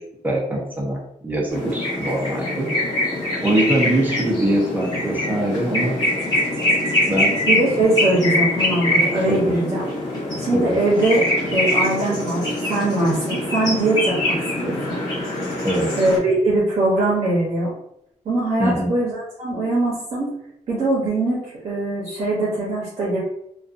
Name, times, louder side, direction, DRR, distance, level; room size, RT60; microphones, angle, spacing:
voice 1, 0.2-2.7 3.4-6.0 7.1-7.4 9.3-9.5 10.5-10.6 15.6-15.9 18.6-18.9, right 1 dB, 15° right, -2 dB, 0.6 m, -22 dB
sound 1, 1.5-16.2, left 1 dB, 30° left, 1.2 m, -23 dB
voice 2, 7.5-9.8 10.4-15.0 16.0-17.7 18.2-20.3 20.7-21.4 21.6-23.2, right 2 dB, 55° right, -5 dB, 0.7 m, -21 dB
2.5 x 2.3 x 2.5 m, 0.76 s
wide cardioid pair, 175°, 13 cm